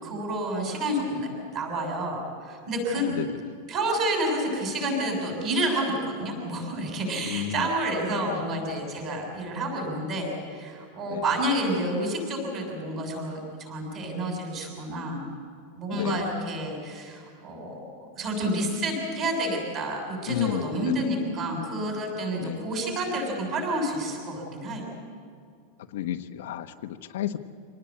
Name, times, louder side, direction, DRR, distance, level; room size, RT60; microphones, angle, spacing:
voice 1, 0.0-1.3 1.5-3.1 3.7-15.3 15.8-17.8 18.2-24.8, right 1 dB, 25° right, 1 dB, 6.9 m, -29 dB
voice 2, 2.9-3.6 7.2-7.7 8.2-8.4 11.1-11.2 15.9-16.2 20.3-21.1 22.4-22.7 25.9-27.4, left 11 dB, 65° left, 6 dB, 1.1 m, -32 dB
26.5 x 19.0 x 8.6 m, 2.3 s
supercardioid pair, 180°, 0 cm